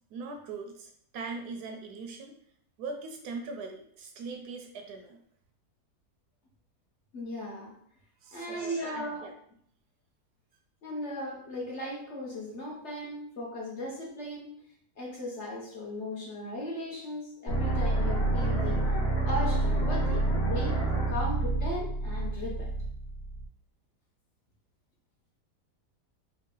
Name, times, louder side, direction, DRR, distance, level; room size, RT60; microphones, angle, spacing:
voice 1, 0.1-2.4 2.8-5.2 8.2-9.3, right 4 dB, 75° right, 4 dB, 1.1 m, -41 dB
voice 2, 7.1-7.7 8.3-9.3 10.8-14.6 15.0-18.9 19.2-20.8 21.1-22.7, left 1 dB, 50° left, -3 dB, 1.0 m, -37 dB
sound 1, 17.5-23.4, right 2 dB, 85° left, 2.0 m, -28 dB
4.6 x 2.2 x 3.7 m, 0.63 s
omnidirectional pair, 1.8 m